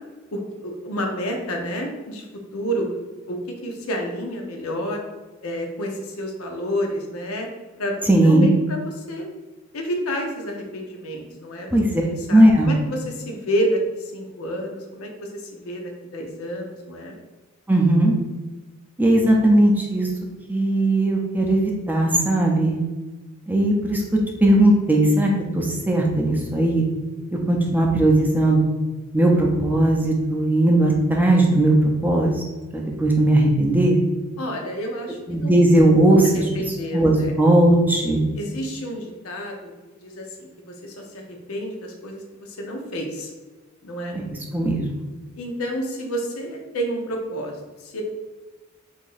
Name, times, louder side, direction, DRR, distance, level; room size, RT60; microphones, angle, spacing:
voice 1, 0.3-2.3 2.5-2.9 3.3-5.0 5.4-7.5 7.8-9.3 9.7-13.8 14.1-17.1 34.4-35.5 36.3-37.3 38.4-39.7 40.0-43.3 43.8-44.1 45.3-48.0, equal, 90° left, 2 dB, 0.7 m, -29 dB
voice 2, 8.1-8.5 11.7-12.0 12.3-12.7 17.7-18.2 19.0-20.1 20.5-22.8 23.5-24.0 24.4-26.8 27.3-28.7 29.1-31.7 32.0-32.3 32.7-34.0 35.3-36.5 36.9-38.2 44.1-44.9, right 1 dB, 10° right, -1 dB, 0.5 m, -18 dB
2.9 x 2.6 x 3.9 m, 1.2 s
head